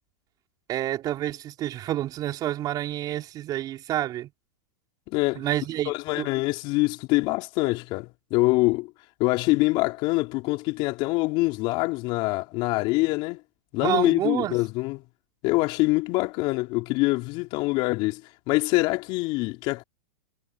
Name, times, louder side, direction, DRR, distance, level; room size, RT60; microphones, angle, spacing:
voice 1, 0.7-4.3 5.3-5.9 6.2-6.3 13.8-14.6, right 13 dB, 35° right, 4.5 m, -28 dB
voice 2, 5.1-5.5 5.9-8.9 9.2-13.4 13.7-15.0 15.4-18.2 18.5-19.8, left 23 dB, 45° left, 3.8 m, -24 dB
hypercardioid pair, 110°, 11 cm